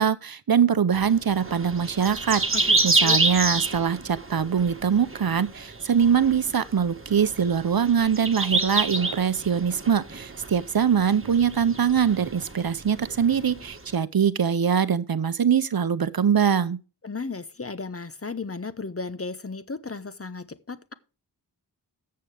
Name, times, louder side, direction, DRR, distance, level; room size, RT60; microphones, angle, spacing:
voice 1, 0.0-16.8, right 7 dB, 55° right, 0.8 m, -23 dB
sound 1, 0.9-13.9, right 2 dB, 30° right, 1.6 m, -29 dB
voice 2, 2.5-3.2 17.0-20.9, left 4 dB, 35° left, 1.0 m, -35 dB
13.5 x 7.7 x 3.5 m
wide cardioid pair, 65°, 42 cm